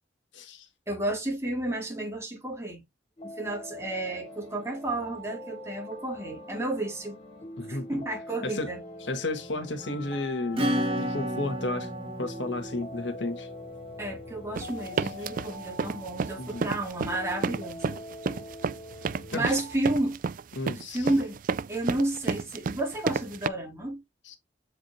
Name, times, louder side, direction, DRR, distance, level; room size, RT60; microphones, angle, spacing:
voice 1, 0.3-0.6 7.6-8.0 8.4-8.7 9.0-10.7 11.0-11.9 12.2-13.5 16.4-16.6 19.3-19.4 20.5-21.1 24.2-24.4, left 2 dB, 85° left, 1.5 m, -32 dB
voice 2, 0.9-2.8 3.2-7.2 7.7-8.8 14.0-18.0 19.3-20.2 20.7-21.4 21.7-24.0, right 1 dB, 15° right, 2.3 m, -31 dB
sound 1, 3.2-19.7, left 1 dB, 35° left, 3.7 m, -43 dB
Acoustic guitar / Strum, 10.6-14.8, equal, 30° right, 1.9 m, -32 dB
sound 2, 14.6-23.5, right 5 dB, 50° right, 0.3 m, -31 dB
7.6 x 4.9 x 2.7 m
head